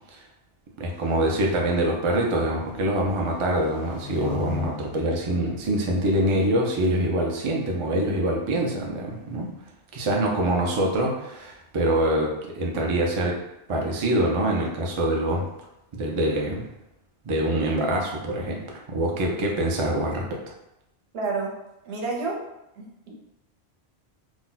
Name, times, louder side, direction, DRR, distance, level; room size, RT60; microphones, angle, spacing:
voice 1, 0.8-9.5 9.9-13.4 13.7-15.5 15.9-16.7 17.2-20.4, right 1 dB, 40° right, -1 dB, 0.4 m, -25 dB
sound 1, 0.9-6.4, left 4 dB, 75° left, 0.8 m, -40 dB
voice 2, 21.1-21.5 21.8-22.4 22.8-23.1, right 3 dB, 75° right, -1 dB, 1.0 m, -29 dB
2.5 x 2.2 x 3.9 m, 0.89 s
omnidirectional pair, 1.1 m